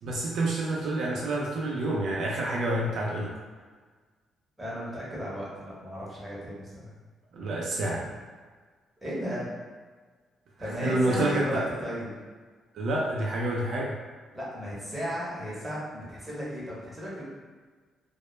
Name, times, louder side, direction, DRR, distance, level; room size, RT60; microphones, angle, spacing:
voice 1, 0.0-3.3 7.3-8.0 10.8-11.6 12.7-13.9, right 1 dB, 70° right, -3 dB, 0.4 m, -28 dB
voice 2, 4.6-6.9 8.0-8.1 9.0-9.5 10.6-12.1 14.3-17.2, equal, 10° right, -8 dB, 0.8 m, -35 dB
2.1 x 2.0 x 3.0 m, 1.5 s
cardioid pair, 125°, 0 cm